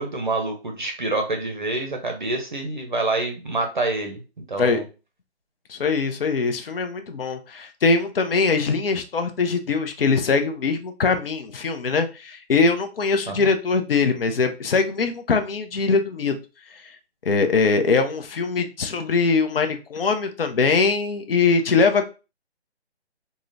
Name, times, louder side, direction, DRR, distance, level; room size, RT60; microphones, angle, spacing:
voice 1, 0.0-4.2 4.5-4.8 13.3-13.5, right 2 dB, 45° right, 4 dB, 0.6 m, -27 dB
voice 2, 5.7-16.4 17.2-22.0, left 4 dB, 60° left, 7 dB, 0.5 m, -22 dB
3.7 x 2.0 x 2.4 m, 0.31 s
hypercardioid pair, 170°, 33 cm